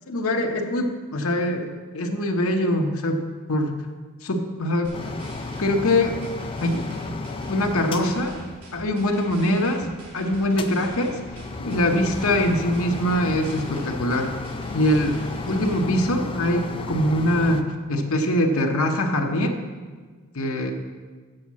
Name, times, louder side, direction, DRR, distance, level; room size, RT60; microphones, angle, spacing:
voice 1, 0.1-1.7 1.9-3.7 4.2-4.9 5.6-6.2 6.6-6.9 7.5-8.4 8.7-9.9 10.1-11.2 11.6-14.3 14.7-15.2 15.5-19.6 20.3-20.7, left 1 dB, 65° left, 3 dB, 0.9 m, -23 dB
sound 1, 4.8-15.8, equal, 70° right, 2.6 m, -43 dB
sound 2, 4.9-9.2 10.5-17.6, left 3 dB, 25° left, 0.4 m, -34 dB
7.8 x 6.5 x 7.3 m, 1.5 s
head